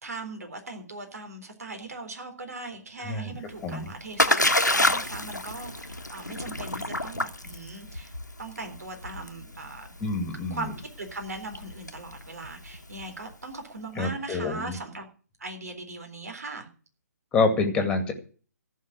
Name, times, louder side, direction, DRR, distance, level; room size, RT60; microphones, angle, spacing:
voice 1, 0.0-8.1 8.4-9.9 10.5-10.7 11.0-15.1 15.4-16.7, right 2 dB, 60° right, 6 dB, 3.8 m, -39 dB
voice 2, 3.0-3.4 3.6-3.9 10.0-10.7 14.0-14.8 17.3-18.1, left 3 dB, 10° left, 5 dB, 2.3 m, -27 dB
Splash splatter, 3.5-13.3, left 2 dB, 85° left, 1.3 m, -29 dB
14.5 x 5.8 x 9.7 m, 0.40 s
figure-of-eight pair, 135°, 9 cm